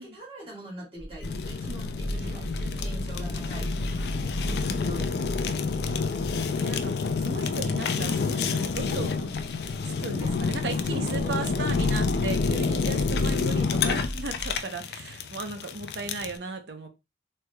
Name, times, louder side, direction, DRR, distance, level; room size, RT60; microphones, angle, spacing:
voice 1, 0.0-2.4 2.7-4.1 4.7-5.6 10.1-10.3 10.8-11.7, right 1 dB, 30° right, 1.7 m, -42 dB
sound 1, 1.0-14.6, equal, 10° left, 0.7 m, -35 dB
Fire, 1.2-16.4, left 5 dB, 65° left, 0.4 m, -29 dB
voice 2, 2.1-2.9 3.3-3.6 4.4-4.9 6.6-6.9 7.2-9.3 9.8-16.9, right 3 dB, 70° right, 0.6 m, -36 dB
3.3 x 3.0 x 2.2 m
head